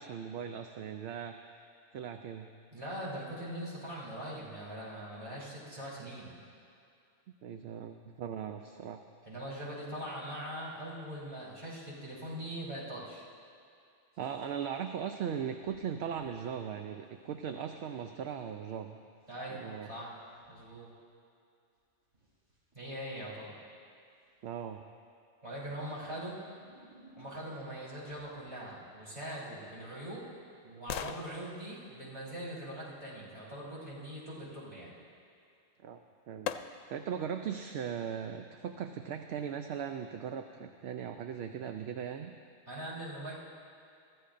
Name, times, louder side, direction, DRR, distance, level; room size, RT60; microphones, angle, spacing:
voice 1, 0.0-1.4 1.9-2.5 7.4-9.0 14.2-19.0 19.5-19.9 24.4-24.8 35.8-36.0 36.3-42.4, right 8 dB, 65° right, 6 dB, 0.8 m, -39 dB
voice 2, 2.7-6.4 9.2-13.2 19.3-20.2 20.5-20.9 22.7-23.5 25.4-26.4 27.2-30.3 30.6-34.9 42.7-43.3, right 1 dB, 25° right, -7 dB, 3.5 m, -42 dB
sound 1, 14.1-14.8 15.6-16.5 17.2-18.1 19.2-20.7 21.8-22.7 24.2-24.6 25.5-27.6 28.0-29.2, right 1 dB, 80° right, 4.6 m, -62 dB
sound 2, 29.6-33.5 35.6-35.7 36.5-37.1 37.6-37.7, left 9 dB, 90° left, 0.9 m, -44 dB
22.5 x 14.0 x 2.6 m, 2.4 s
omnidirectional pair, 1.3 m